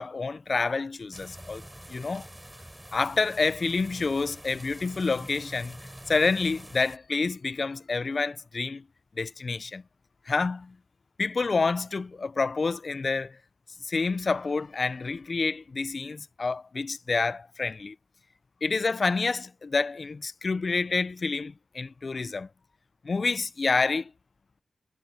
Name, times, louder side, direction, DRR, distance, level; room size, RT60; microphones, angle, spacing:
voice 1, 0.0-1.6 1.9-2.3 2.9-5.8 6.1-8.8 9.2-9.8 10.3-10.8 11.2-13.4 13.8-18.0 18.6-22.5 23.0-24.1, left 4 dB, 55° left, 0.4 m, -28 dB
sound 1, 1.1-7.0, right 1 dB, 10° right, 4.3 m, -46 dB
cardioid pair, 45°, 0 cm